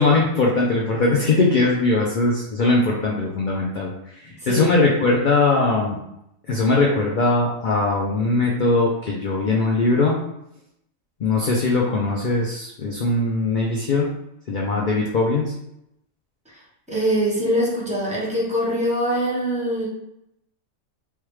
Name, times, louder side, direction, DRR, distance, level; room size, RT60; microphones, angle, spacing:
voice 1, 0.0-3.9 4.2-6.0 6.5-10.2 11.2-14.1 14.5-15.5, left 3 dB, 75° left, -2 dB, 0.4 m, -20 dB
voice 2, 16.9-19.9, equal, 5° right, -5 dB, 0.7 m, -23 dB
3.4 x 2.2 x 3.0 m, 0.79 s
omnidirectional pair, 1.4 m